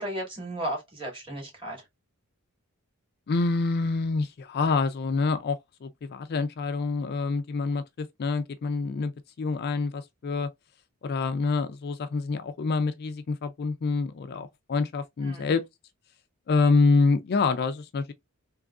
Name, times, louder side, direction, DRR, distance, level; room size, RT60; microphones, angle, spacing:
voice 1, 0.0-1.8 15.2-15.5, right 1 dB, 25° right, 2.1 m, -34 dB
voice 2, 3.3-9.1 9.4-10.5 11.0-15.6 16.5-18.1, left 4 dB, 45° left, 0.4 m, -26 dB
3.6 x 3.0 x 2.3 m
head